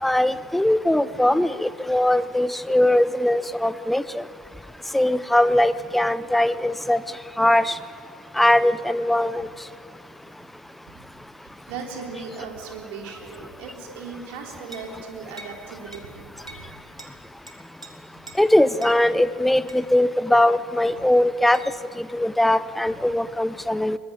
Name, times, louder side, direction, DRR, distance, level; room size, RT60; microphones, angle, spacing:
voice 1, 0.0-4.2 4.9-7.0 7.4-7.8 8.3-9.5 18.4-21.6 22.0-24.0, left 1 dB, 5° left, 16 dB, 0.8 m, -20 dB
voice 2, 11.7-16.6, right 5 dB, 55° right, 1 dB, 3.7 m, -37 dB
sound 1, 14.7-14.9 15.4-15.6 15.9-16.1 16.5-16.7 17.0-17.1 17.5-17.9 18.3-18.4 18.8-19.0 19.7-19.9 21.5-21.7, right 2 dB, 90° right, 1.9 m, -42 dB
22.5 x 21.0 x 9.3 m, 2.5 s
figure-of-eight pair, 70°, 3 cm